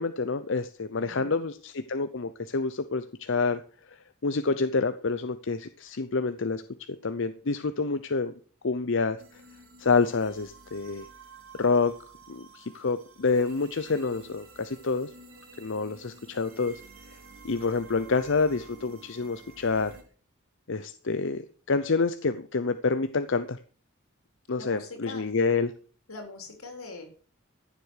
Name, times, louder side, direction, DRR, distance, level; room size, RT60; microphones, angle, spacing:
voice 1, 0.0-3.6 3.9-6.6 7.0-8.3 8.6-9.2 9.8-11.1 11.6-11.9 12.3-15.1 15.6-16.8 17.1-17.2 17.4-20.0 20.7-23.6 24.5-25.7, left 4 dB, 60° left, 11 dB, 0.7 m, -28 dB
voice 2, 1.0-1.4 24.6-25.2 26.1-27.1, left 3 dB, 85° left, 5 dB, 4.0 m, -42 dB
sound 1, 9.2-20.0, right 4 dB, 65° right, 3.6 m, -51 dB
14.5 x 7.6 x 6.5 m, 0.42 s
head